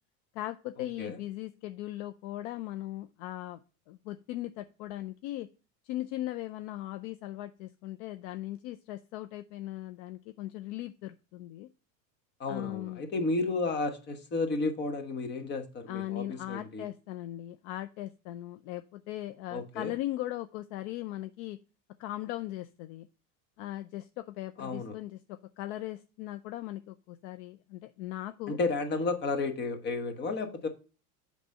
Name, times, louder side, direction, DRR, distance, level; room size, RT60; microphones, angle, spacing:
voice 1, 0.3-3.6 3.9-5.5 5.8-11.7 12.5-13.0 15.9-21.6 22.0-23.1 23.6-28.6, left 15 dB, 50° left, 0.6 m, -39 dB
voice 2, 12.4-16.9 19.5-19.9 24.6-25.0 28.5-30.7, left 3 dB, 25° left, 1.2 m, -32 dB
8.0 x 3.3 x 6.5 m
supercardioid pair, 140°, 43 cm